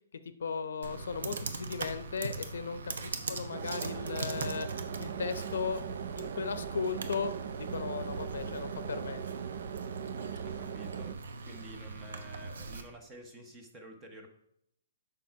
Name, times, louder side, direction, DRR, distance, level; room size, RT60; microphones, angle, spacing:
voice 1, 0.4-4.7 5.0-5.8 6.2-9.2, left 6 dB, 70° left, 11 dB, 0.7 m, -36 dB
Computer keyboard, 0.8-12.8, right 3 dB, 75° right, 1.0 m, -41 dB
voice 2, 3.2-3.6 10.4-14.3, right 1 dB, 10° right, 3 dB, 0.7 m, -50 dB
sound 1, 3.5-11.1, right 9 dB, 45° right, 0.4 m, -40 dB
6.7 x 5.8 x 4.6 m, 0.76 s
hypercardioid pair, 175°, 0 cm